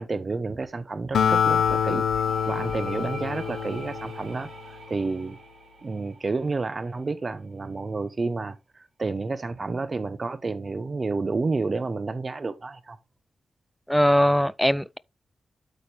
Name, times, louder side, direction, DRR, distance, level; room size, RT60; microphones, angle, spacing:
voice 1, 0.0-2.0 2.5-5.4 5.8-13.0, right 3 dB, 40° right, 0.7 m, -30 dB
Acoustic guitar, 1.1-4.7, left 7 dB, 85° left, 0.9 m, -25 dB
sound 1, 2.1-7.8, right 6 dB, 85° right, 6.1 m, -46 dB
voice 2, 13.9-15.0, equal, 5° left, 0.5 m, -20 dB
12.5 x 4.3 x 3.3 m
cardioid pair, 70°, 0 cm